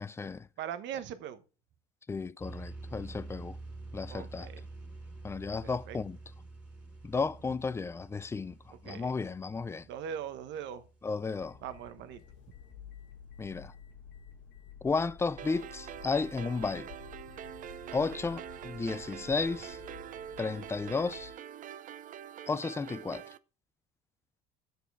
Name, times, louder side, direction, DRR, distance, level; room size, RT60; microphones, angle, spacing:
voice 1, 0.0-0.5 2.1-3.6 3.9-4.5 5.2-6.2 7.0-9.9 11.0-11.6 13.4-13.7 14.8-16.9 17.9-19.8 20.4-21.3 22.5-23.2, left 4 dB, 15° left, 0.4 m, -33 dB
voice 2, 0.6-1.4 4.1-4.7 5.6-6.0 8.8-9.1 9.8-10.8 11.6-12.2, right 9 dB, 65° right, 1.1 m, -40 dB
sound 1, 2.4-11.9, right 2 dB, 5° right, 2.6 m, -48 dB
sound 2, 11.3-21.3, left 9 dB, 75° left, 1.2 m, -51 dB
sound 3, 15.4-23.4, right 10 dB, 40° right, 0.5 m, -45 dB
9.4 x 6.8 x 4.7 m
cardioid pair, 135°, 20 cm